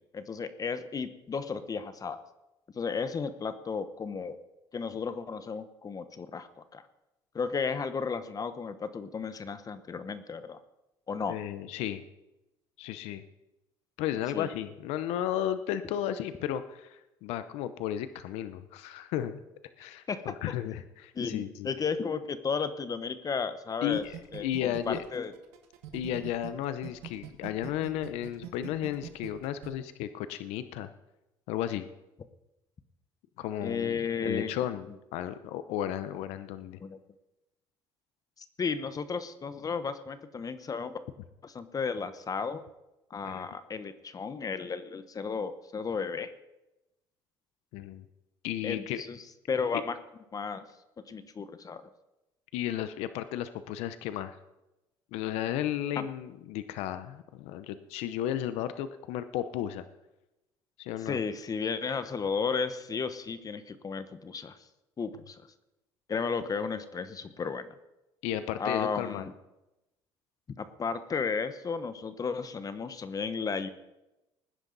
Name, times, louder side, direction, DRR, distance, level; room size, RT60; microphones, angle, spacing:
voice 1, 0.1-2.2 2.7-4.4 4.7-6.8 7.3-10.6 11.1-11.4 14.3-14.5 20.1-20.3 21.1-24.0 24.3-25.3 33.6-34.5 36.8-37.0 38.6-40.9 41.4-42.6 43.1-46.3 48.6-49.2 49.5-49.9 50.3-50.7 51.1-51.8 56.0-56.1 61.1-64.6 65.0-65.4 66.1-67.7 68.6-69.3 70.6-73.7, left 5 dB, 35° left, 12 dB, 1.0 m, -33 dB
voice 2, 11.3-12.0 12.8-13.2 14.0-19.4 19.8-21.7 23.8-25.0 25.9-30.9 31.5-31.9 33.4-36.8 43.2-43.5 47.7-48.0 48.4-49.0 52.5-54.4 55.1-59.8 60.8-61.2 68.2-69.3, left 11 dB, 80° left, 12 dB, 0.8 m, -34 dB
sound 1, 23.9-26.5 26.8-29.7, right 12 dB, 85° right, 1.7 m, -42 dB
19.5 x 10.0 x 4.0 m, 0.96 s
supercardioid pair, 90°, 11 cm